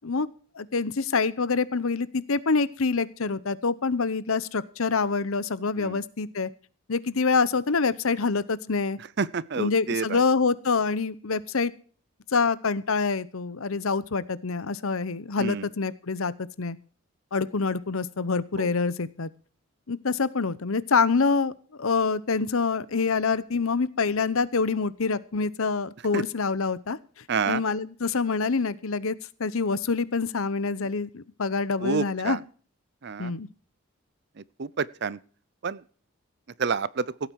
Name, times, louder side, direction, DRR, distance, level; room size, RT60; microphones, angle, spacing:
voice 1, 0.5-6.5 6.9-9.0 9.6-11.7 12.3-16.8 17.3-19.3 19.9-21.5 21.8-27.0 27.5-32.4 33.2-33.5, left 4 dB, 70° left, 17 dB, 0.8 m, -26 dB
voice 2, 9.2-10.2 15.4-15.7 18.6-18.7 26.1-26.2 27.3-27.6 31.8-32.4 33.0-33.3 34.6-35.2 35.6-35.8 36.6-37.1, right 5 dB, 50° right, 21 dB, 0.5 m, -28 dB
16.5 x 9.1 x 4.7 m, 0.41 s
head